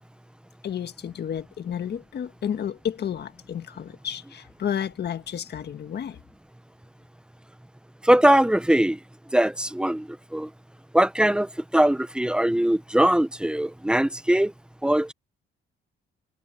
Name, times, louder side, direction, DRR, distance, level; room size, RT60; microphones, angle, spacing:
voice 1, 0.6-6.2, left 9 dB, 55° left, 1.7 m, -31 dB
voice 2, 8.0-9.0 9.3-10.1 10.3-10.5 10.9-14.5 14.8-15.1, right 1 dB, 5° right, 1.0 m, -21 dB
cardioid pair, 90°, 20 cm